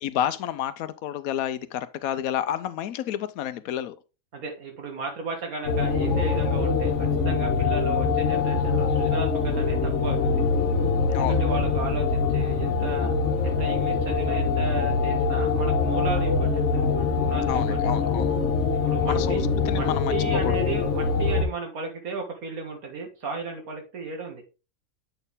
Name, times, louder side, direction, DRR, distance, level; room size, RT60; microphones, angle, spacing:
voice 1, 0.0-4.0 11.1-11.4 17.5-18.4 19.1-20.1 20.4-20.6, left 10 dB, 80° left, 1.0 m, -30 dB
voice 2, 4.3-10.4 11.1-13.1 13.4-18.0 18.7-19.4 19.7-24.4, right 3 dB, 80° right, 2.1 m, -35 dB
sound 1, 5.6-21.4, left 4 dB, 55° left, 1.5 m, -24 dB
7.9 x 4.4 x 3.5 m
omnidirectional pair, 1.5 m